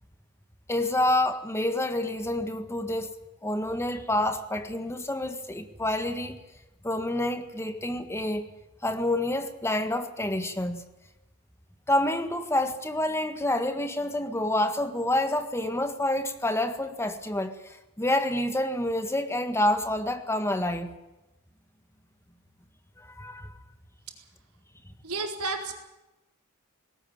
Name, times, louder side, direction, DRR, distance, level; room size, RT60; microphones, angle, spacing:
voice 1, 0.7-6.4 6.8-8.5 8.8-10.8 11.9-20.9 23.0-23.5, left 1 dB, 10° left, 1.6 m, -28 dB
voice 2, 25.0-25.7, right 3 dB, 75° right, 4.3 m, -32 dB
19.5 x 17.0 x 8.9 m
head